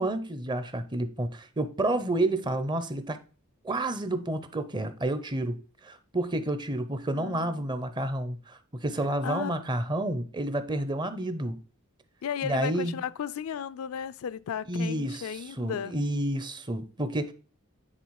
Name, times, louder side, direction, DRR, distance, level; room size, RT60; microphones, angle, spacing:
voice 1, 0.0-3.2 3.6-11.6 12.4-13.0 14.7-17.3, right 1 dB, 20° right, 0.6 m, -30 dB
voice 2, 7.1-7.5 9.2-9.9 12.2-16.0, left 8 dB, 75° left, 0.4 m, -35 dB
9.8 x 3.7 x 4.7 m
head